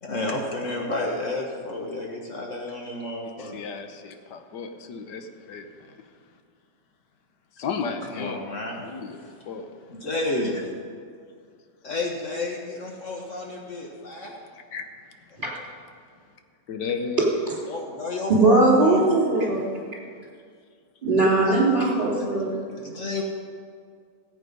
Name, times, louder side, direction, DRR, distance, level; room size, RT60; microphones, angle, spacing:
voice 1, 0.0-3.6 8.0-8.9 9.2-9.3 9.9-10.7 11.8-14.4 17.7-19.0 21.4-21.6 22.6-23.2, left 2 dB, 50° left, 0 dB, 1.6 m, -31 dB
voice 2, 3.4-5.6 7.6-8.4 8.8-9.6 14.7-14.9 16.7-17.3, left 5 dB, 85° left, 7 dB, 1.6 m, -33 dB
voice 3, 18.3-19.6 21.0-22.5, right 2 dB, 25° right, -4 dB, 3.8 m, -19 dB
17.5 x 8.2 x 5.3 m, 2.1 s
omnidirectional pair, 1.8 m